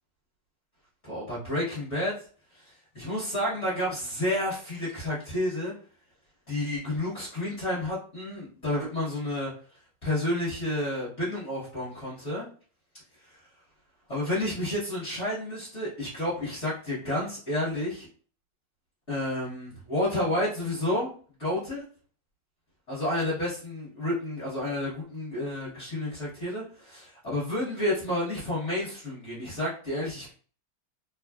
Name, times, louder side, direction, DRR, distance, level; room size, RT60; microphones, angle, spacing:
voice 1, 1.0-2.1 2.5-5.7 6.5-9.5 10.0-12.5 13.3-13.4 14.1-18.1 19.1-21.1 21.4-21.8 22.9-30.3, left 1 dB, 40° left, -9 dB, 1.3 m, -30 dB
3.3 x 2.4 x 2.3 m, 0.42 s
omnidirectional pair, 2.3 m